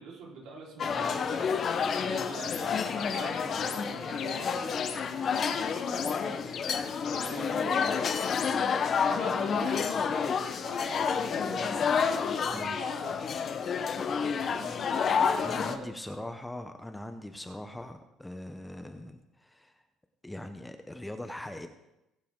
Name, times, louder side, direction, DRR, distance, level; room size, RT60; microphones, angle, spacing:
voice 1, 0.0-1.5 2.0-8.7 9.1-11.8 12.2-13.3 14.3-14.8 15.4-15.9, right 3 dB, 70° right, -3 dB, 4.1 m, -45 dB
sound 1, 0.8-15.8, left 6 dB, 35° left, 0.9 m, -29 dB
sound 2, 1.8-2.6 3.0-3.8 4.2-5.0 5.3-6.2 6.5-7.4 7.7-8.5, left 8 dB, 55° left, 1.4 m, -41 dB
voice 2, 15.4-19.7 20.2-21.7, left 1 dB, 5° left, 7 dB, 0.7 m, -41 dB
20.0 x 7.5 x 3.7 m, 0.90 s
cardioid pair, 140°, 0 cm